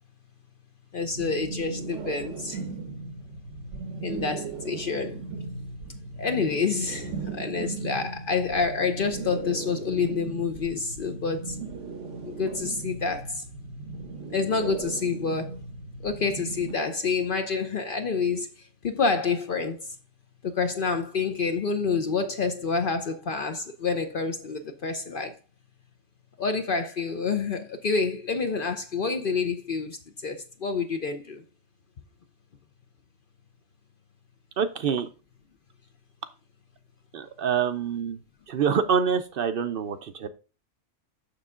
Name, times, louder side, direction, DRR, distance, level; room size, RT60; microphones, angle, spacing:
voice 1, 0.9-2.6 4.0-5.2 6.2-11.6 12.2-13.4 14.3-15.6 16.0-18.5 18.8-19.8 20.4-25.4 26.4-30.0 30.2-31.4, left 4 dB, 50° left, 0.8 m, -28 dB
sound 1, 1.0-16.8, right 4 dB, 75° right, 1.2 m, -37 dB
voice 2, 34.6-35.1 37.1-38.2 38.5-40.3, right 7 dB, 55° right, 0.7 m, -26 dB
6.7 x 6.4 x 3.6 m
omnidirectional pair, 1.3 m